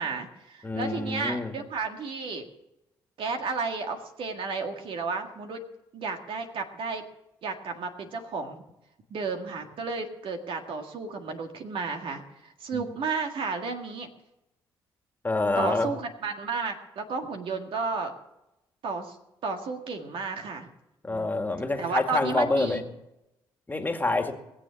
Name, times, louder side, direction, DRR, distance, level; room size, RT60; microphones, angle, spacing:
voice 1, 0.0-2.5 3.2-5.6 5.9-7.0 7.4-8.6 9.1-14.1 15.6-18.1 18.8-19.2 19.4-20.7 21.1-21.4 21.8-22.8, right 4 dB, 65° right, 4 dB, 1.9 m, -32 dB
voice 2, 0.6-1.5 12.7-12.9 15.2-15.9 21.0-22.8 23.7-24.3, left 2 dB, 20° left, 5 dB, 2.0 m, -27 dB
20.5 x 7.3 x 7.1 m, 0.91 s
supercardioid pair, 60°, 10 cm